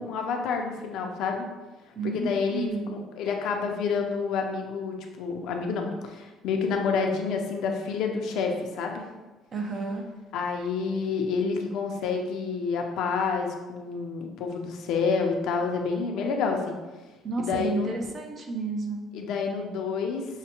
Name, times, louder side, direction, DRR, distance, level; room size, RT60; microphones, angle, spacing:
voice 1, 0.0-1.4 2.0-9.0 10.3-16.8 17.4-17.9 19.1-20.3, left 5 dB, 75° left, 2 dB, 0.6 m, -28 dB
voice 2, 1.9-3.0 9.5-10.0 17.2-19.1, right 3 dB, 40° right, 3 dB, 0.7 m, -31 dB
6.5 x 2.2 x 2.9 m, 1.2 s
cardioid pair, 105°, 0 cm